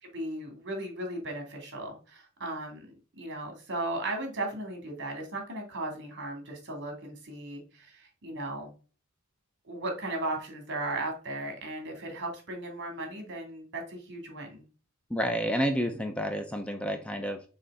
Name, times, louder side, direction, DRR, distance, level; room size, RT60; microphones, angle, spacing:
voice 1, 0.0-2.9 3.1-8.7 9.6-14.6, right 2 dB, 55° right, 3 dB, 2.4 m, -36 dB
voice 2, 15.1-17.4, equal, 5° left, 6 dB, 0.6 m, -30 dB
6.4 x 3.4 x 5.4 m, 0.37 s
head